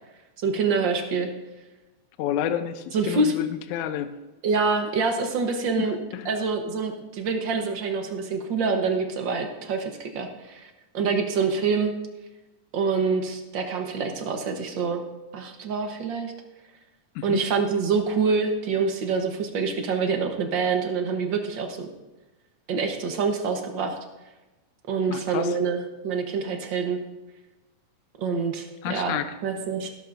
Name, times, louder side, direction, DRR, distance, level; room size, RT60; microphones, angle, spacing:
voice 1, 0.4-1.3 2.9-3.3 4.4-6.0 6.2-11.9 12.7-15.0 15.3-16.3 17.2-21.9 22.7-24.0 24.9-25.8 26.0-27.0 28.2-29.2 29.4-29.9, right 4 dB, 70° right, 4 dB, 1.0 m, -26 dB
voice 2, 2.2-4.1 6.1-6.3 17.2-17.4 25.1-25.6 28.8-29.3, left 10 dB, 80° left, 10 dB, 1.9 m, -30 dB
16.0 x 13.0 x 2.6 m, 1.1 s
omnidirectional pair, 3.8 m